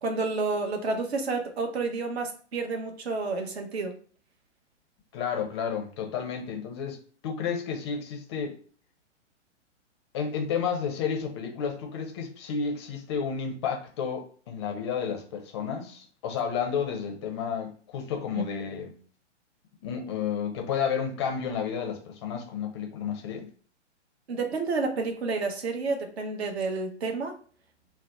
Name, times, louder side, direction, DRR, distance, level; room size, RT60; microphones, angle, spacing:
voice 1, 0.0-3.9 18.3-18.4 24.3-27.4, right 3 dB, 60° right, 0.8 m, -30 dB
voice 2, 5.1-8.5 10.1-18.9 19.8-23.5, left 6 dB, 25° left, 0.5 m, -31 dB
2.7 x 2.1 x 3.6 m
figure-of-eight pair, 120°, 37 cm